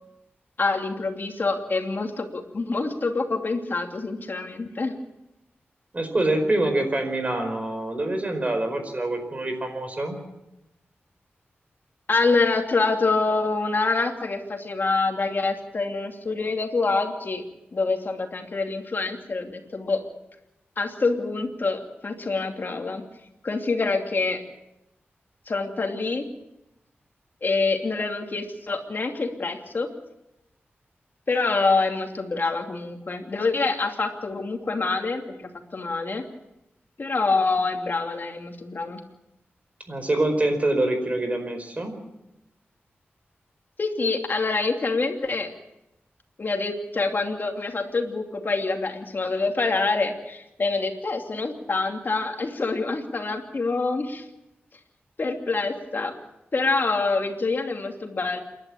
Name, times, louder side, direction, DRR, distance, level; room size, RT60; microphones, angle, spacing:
voice 1, 0.6-4.9 12.1-17.4 17.7-20.0 20.8-23.0 23.4-24.4 25.5-26.3 27.4-29.9 31.3-36.2 37.0-39.0 43.8-45.5 46.4-54.2 55.2-56.2 56.5-58.4, left 3 dB, 50° left, 3 dB, 2.8 m, -26 dB
voice 2, 5.9-10.2 39.9-41.9, right 1 dB, 35° right, 7 dB, 4.7 m, -25 dB
27.5 x 12.0 x 8.7 m, 0.91 s
wide cardioid pair, 85°, 4 cm